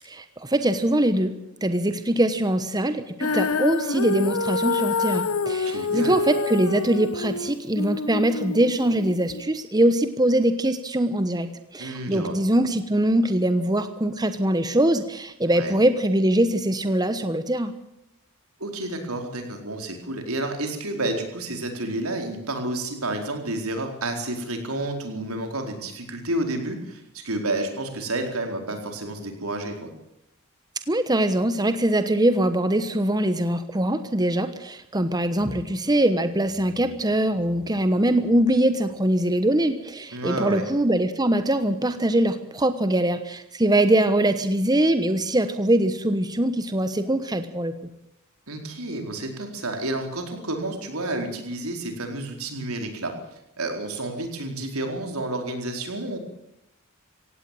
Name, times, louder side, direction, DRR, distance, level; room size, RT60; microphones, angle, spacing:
voice 1, 0.0-1.3 1.6-17.7 30.9-47.7, right 1 dB, 20° right, 10 dB, 1.1 m, -22 dB
Female singing, 3.2-9.4, left 4 dB, 85° left, 1.2 m, -27 dB
voice 2, 5.6-6.2 11.8-12.4 15.4-15.7 18.6-29.9 40.1-40.7 48.5-53.1 53.6-56.2, right 2 dB, 85° right, 4 dB, 4.4 m, -30 dB
17.0 x 17.0 x 9.2 m, 0.83 s
head